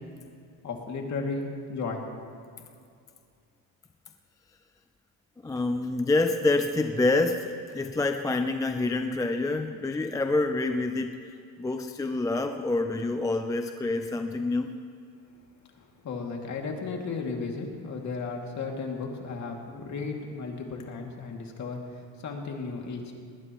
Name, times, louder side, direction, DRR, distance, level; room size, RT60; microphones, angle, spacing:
voice 1, 0.6-2.1 15.7-23.1, left 4 dB, 45° left, 1 dB, 2.5 m, -35 dB
voice 2, 5.4-11.3 11.6-14.7, left 2 dB, 10° left, 6 dB, 0.4 m, -27 dB
20.0 x 19.5 x 3.1 m, 2.4 s
cardioid pair, 140°, 40 cm